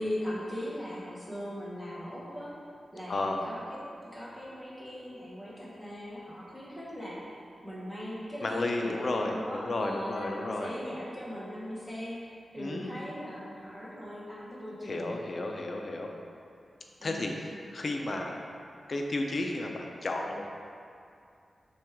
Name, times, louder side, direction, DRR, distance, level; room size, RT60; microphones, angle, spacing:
voice 1, 0.0-2.6 2.9-15.1 17.0-17.3, equal, ahead, -8 dB, 0.9 m, -39 dB
voice 2, 3.1-3.4 8.4-10.7 12.6-12.9 14.8-16.1 17.0-18.4 18.9-20.5, left 2 dB, 45° left, 2 dB, 0.4 m, -32 dB
5.9 x 2.3 x 3.4 m, 2.4 s
wide cardioid pair, 125°, 0 cm